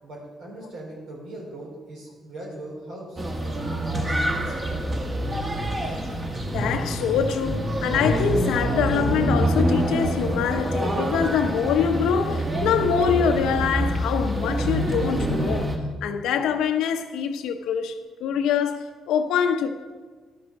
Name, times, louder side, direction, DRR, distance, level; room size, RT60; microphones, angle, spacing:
voice 1, 0.0-4.6, right 1 dB, 85° right, 3.7 m, -40 dB
sound 1, 3.2-15.8, right 1 dB, 25° right, 1.5 m, -26 dB
voice 2, 6.5-19.7, left 7 dB, 90° left, 0.7 m, -24 dB
11.5 x 6.7 x 6.0 m
cardioid pair, 95°, 0 cm